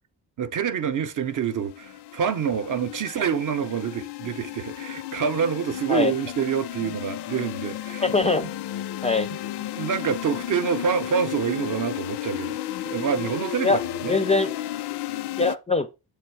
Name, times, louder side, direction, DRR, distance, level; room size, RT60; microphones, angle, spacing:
voice 1, 0.4-8.0 8.4-8.5 9.3-9.4 9.7-12.6 12.8-14.2, right 7 dB, 50° right, 0.7 m, -27 dB
sound 1, 1.2-15.5, left 13 dB, 80° left, 0.5 m, -33 dB
voice 2, 8.0-8.5 9.0-9.3 13.6-13.8 14.1-14.5 15.4-15.9, left 3 dB, 20° left, 0.4 m, -22 dB
7.0 x 3.5 x 4.5 m
wide cardioid pair, 150°, 39 cm